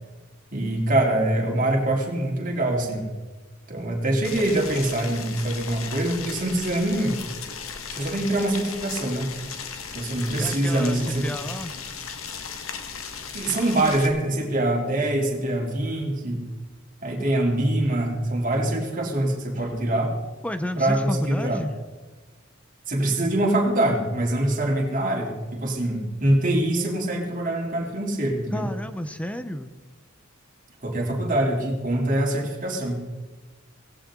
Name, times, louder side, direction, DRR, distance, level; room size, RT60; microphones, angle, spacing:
voice 1, 0.5-3.1 3.7-7.2 7.9-9.3 9.9-11.2 13.3-16.4 17.0-20.1 20.8-21.6 22.9-28.7 30.8-33.0, right 1 dB, 40° right, 0 dB, 3.2 m, -24 dB
Boiling, 4.2-14.1, left 6 dB, 90° left, 1.6 m, -36 dB
voice 2, 10.4-11.7 20.4-21.7 28.5-29.7, left 1 dB, 5° left, 9 dB, 0.8 m, -31 dB
17.5 x 17.0 x 3.8 m, 1.2 s
head